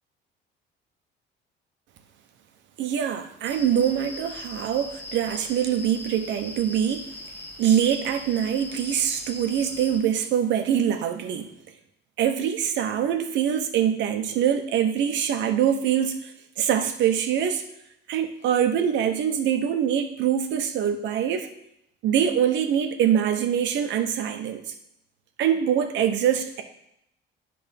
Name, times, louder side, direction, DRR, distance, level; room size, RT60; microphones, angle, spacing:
voice 1, 2.8-7.2 7.6-11.5 12.2-16.3 16.6-17.7 18.1-21.5 22.0-24.7 25.4-26.6, right 9 dB, 65° right, 7 dB, 0.9 m, -24 dB
sound 1, 3.4-10.0, left 1 dB, 10° left, 0.8 m, -40 dB
10.0 x 3.4 x 5.3 m, 0.79 s
cardioid pair, 170°, 20 cm